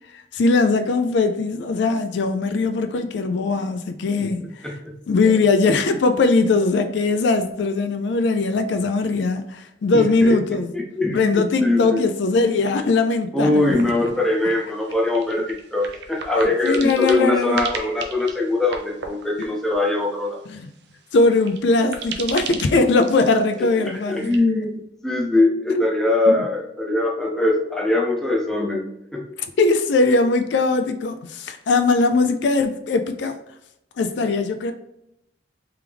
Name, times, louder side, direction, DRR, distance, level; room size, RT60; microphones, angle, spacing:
voice 1, 0.1-4.7 5.1-10.7 11.1-13.8 16.6-17.6 19.4-19.5 20.5-20.7 21.1-24.4 25.7-25.8 26.3-26.4 29.4-33.4 34.0-34.7, left 3 dB, 60° left, 0.4 m, -20 dB
voice 2, 9.9-10.4 10.7-12.0 13.3-20.4 23.8-24.7 25.0-28.9 29.1-29.2, left 2 dB, ahead, 0.7 m, -22 dB
sound 1, 13.5-24.4, right 5 dB, 60° right, 0.5 m, -37 dB
3.4 x 3.4 x 3.4 m
head